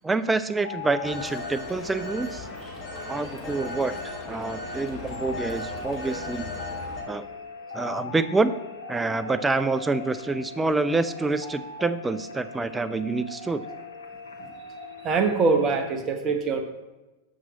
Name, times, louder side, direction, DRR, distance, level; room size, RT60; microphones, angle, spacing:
voice 1, 0.0-2.5 3.1-4.0 4.3-6.5 7.1-7.3 7.7-8.5 8.9-13.7, right 3 dB, 10° right, 13 dB, 0.3 m, -27 dB
sound 1, 0.6-15.9, left 3 dB, 70° left, 0.7 m, -40 dB
Telephone, 1.0-7.0, left 2 dB, 30° left, 2.6 m, -37 dB
voice 2, 15.0-16.6, right 4 dB, 30° right, 6 dB, 0.8 m, -23 dB
7.4 x 5.9 x 4.0 m, 1.1 s
figure-of-eight pair, 90°, 0 cm